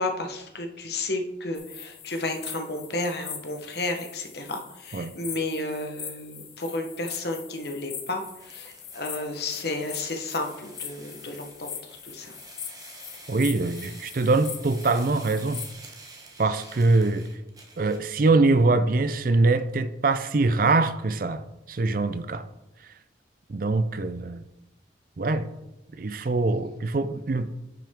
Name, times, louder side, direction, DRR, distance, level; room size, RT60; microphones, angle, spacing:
voice 1, 0.0-12.4, left 2 dB, 55° left, 1.1 m, -32 dB
sound 1, 1.5-15.7, left 7 dB, 30° left, 1.0 m, -41 dB
sound 2, 8.3-18.1, right 3 dB, 20° right, 1.1 m, -49 dB
voice 2, 13.3-15.6 16.4-17.3 17.8-22.5 23.5-24.4 25.2-25.5 25.9-27.5, right 3 dB, 45° right, 0.4 m, -23 dB
9.9 x 5.8 x 3.6 m
head